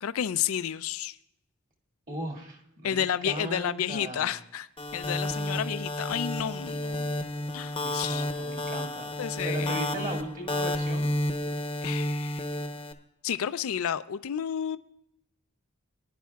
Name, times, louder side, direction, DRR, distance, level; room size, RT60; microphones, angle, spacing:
voice 1, 0.0-1.2 2.8-7.2 7.5-8.3 9.2-9.8 11.8-12.4 13.2-14.8, left 9 dB, 70° left, 14 dB, 0.4 m, -31 dB
voice 2, 2.1-4.4 7.8-9.1 9.4-11.1, right 1 dB, 40° right, 2 dB, 2.1 m, -37 dB
sound 1, 4.8-12.9, left 1 dB, 25° left, 0.8 m, -31 dB
20.0 x 10.0 x 2.3 m, 0.80 s
head